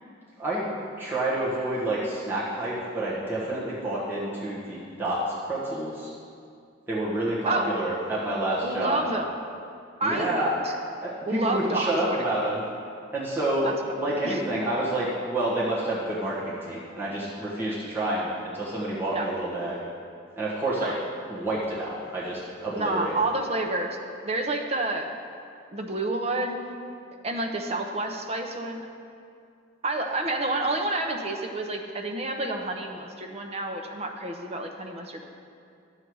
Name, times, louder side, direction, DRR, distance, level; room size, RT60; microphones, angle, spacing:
voice 1, 0.4-0.7 1.0-6.1 6.9-9.0 10.0-10.6 11.0-12.6 13.1-13.7 14.0-19.8 20.4-20.9 21.3-23.2, right 1 dB, 10° right, -8 dB, 1.4 m, -28 dB
voice 2, 8.6-9.3 10.0-10.4 10.6-10.7 11.2-12.2 13.6-13.7 14.2-14.4 19.1-19.3 20.8-21.0 22.8-24.0 24.2-25.1 25.7-26.6 27.2-28.8 29.8-35.2, right 2 dB, 30° right, 2 dB, 0.8 m, -29 dB
11.0 x 7.6 x 4.7 m, 2.4 s
head